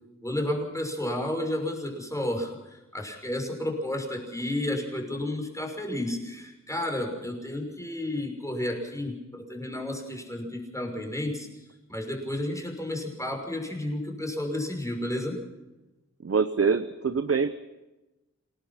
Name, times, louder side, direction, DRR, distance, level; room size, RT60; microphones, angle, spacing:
voice 1, 0.2-11.5 11.9-15.4, left 1 dB, 10° left, 2 dB, 5.9 m, -32 dB
voice 2, 16.2-17.5, right 5 dB, 50° right, 11 dB, 0.9 m, -24 dB
28.0 x 18.5 x 5.8 m, 1.0 s
wide cardioid pair, 85°, 29 cm